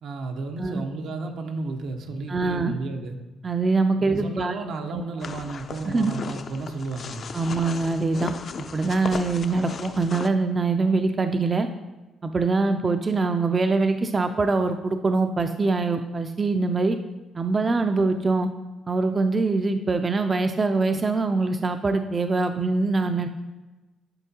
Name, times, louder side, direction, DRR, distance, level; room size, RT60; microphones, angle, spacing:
voice 1, 0.0-3.2 4.0-7.2, right 3 dB, 75° right, 4 dB, 0.8 m, -33 dB
voice 2, 2.3-2.7 3.4-4.5 4.9-5.0 5.9-6.2 7.3-8.3 8.7-11.7 12.2-17.0 17.3-18.5 18.9-23.3, right 3 dB, 30° right, 7 dB, 0.4 m, -23 dB
sound 1, 5.2-10.3, left 5 dB, 50° left, 0.4 m, -36 dB
10.5 x 4.5 x 2.8 m, 1.1 s
cardioid pair, 90°, 0 cm